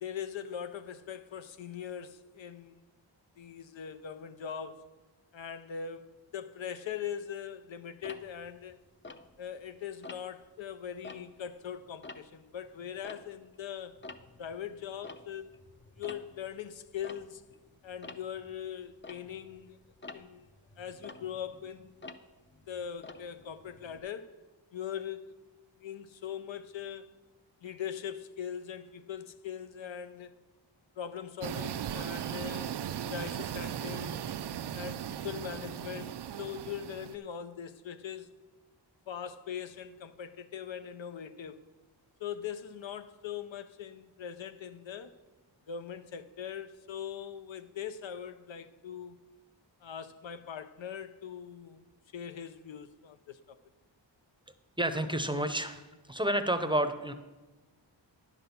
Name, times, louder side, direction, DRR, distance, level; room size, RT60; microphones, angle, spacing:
voice 1, 0.0-2.8 3.4-4.9 5.3-8.8 9.4-14.0 14.4-15.5 16.0-17.4 17.8-19.8 20.1-20.5 20.8-21.9 22.7-24.4 24.7-25.3 25.8-27.1 27.6-30.3 31.0-32.8 33.1-34.2 34.7-38.3 39.1-41.6 42.2-45.2 45.7-49.2 49.8-51.8 52.1-53.6, left 8 dB, 80° left, 0.7 m, -41 dB
Tick-tock, 8.0-9.7 10.0-10.5 10.9-13.6 13.9-24.0, left 3 dB, 25° left, 0.6 m, -50 dB
sound 1, 31.4-37.1, right 9 dB, 65° right, 0.5 m, -37 dB
voice 2, 54.8-55.8 56.1-57.1, right 1 dB, 10° right, 0.7 m, -30 dB
10.0 x 6.1 x 6.9 m
wide cardioid pair, 90°, 45 cm